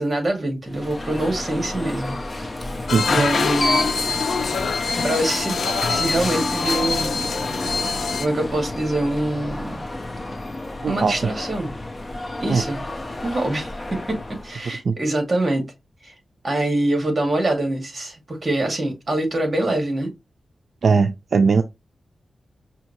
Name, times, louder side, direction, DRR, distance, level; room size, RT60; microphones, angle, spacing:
voice 1, 0.0-2.5 3.1-3.9 5.0-5.6 5.9-7.2 8.2-9.8 10.9-11.8 12.4-12.8 13.2-15.7 16.0-16.1 16.4-20.1, right 1 dB, 35° right, 2.2 m, -24 dB
Alarm, 0.7-14.6, left 1 dB, 20° left, 0.7 m, -31 dB
sound 1, 2.9-8.3, left 5 dB, 75° left, 0.5 m, -24 dB
voice 2, 2.9-3.3 10.8-11.3 12.5-12.6 14.8-14.9 20.8-21.6, right 5 dB, 65° right, 0.4 m, -19 dB
5.6 x 2.8 x 3.0 m
wide cardioid pair, 125°, 0 cm